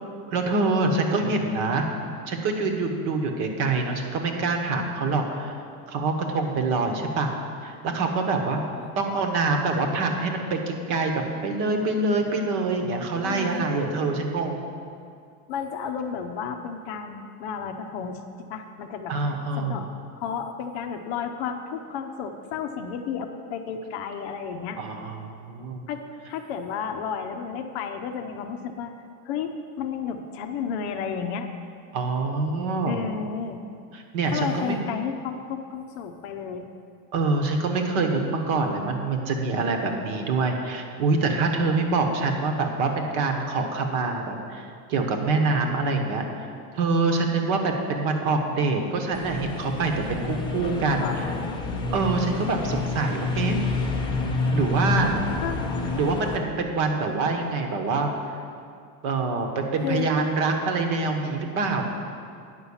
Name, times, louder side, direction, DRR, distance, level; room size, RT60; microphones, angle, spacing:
voice 1, 0.3-1.8 2.3-5.5 5.9-7.3 7.6-8.6 9.0-14.6 19.1-19.8 24.8-25.8 31.9-33.0 33.9-34.8 37.1-46.2 46.7-51.3 51.9-53.6 54.5-55.2 55.9-58.1 59.0-61.8, right 3 dB, 45° right, 4 dB, 1.3 m, -25 dB
voice 2, 13.2-13.7 15.5-18.2 18.5-19.1 19.6-19.9 20.1-24.8 25.9-28.9 29.3-31.5 32.9-33.6 34.3-36.7 51.0-51.6 55.4-55.6 59.8-60.1, left 7 dB, 45° left, 6 dB, 0.7 m, -32 dB
sound 1, 49.1-56.4, left 3 dB, 10° left, 0.5 m, -28 dB
9.9 x 5.7 x 7.1 m, 2.4 s
supercardioid pair, 155°, 46 cm